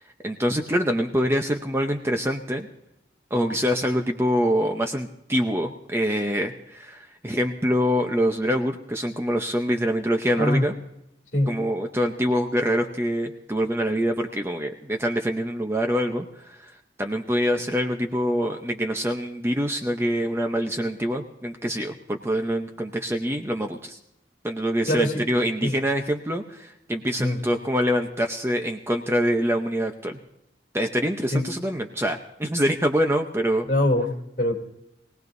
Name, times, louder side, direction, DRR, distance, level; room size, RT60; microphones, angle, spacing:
voice 1, 0.2-2.7 3.3-10.7 11.5-16.6 17.0-24.0 24.4-30.2 30.7-33.7, equal, 15° right, 4 dB, 0.7 m, -25 dB
voice 2, 10.3-10.6 11.3-11.5 24.9-25.2 25.6-25.8 27.2-27.4 31.3-31.4 33.7-34.5, left 1 dB, 45° left, -1 dB, 2.9 m, -23 dB
23.0 x 18.0 x 2.7 m, 0.84 s
head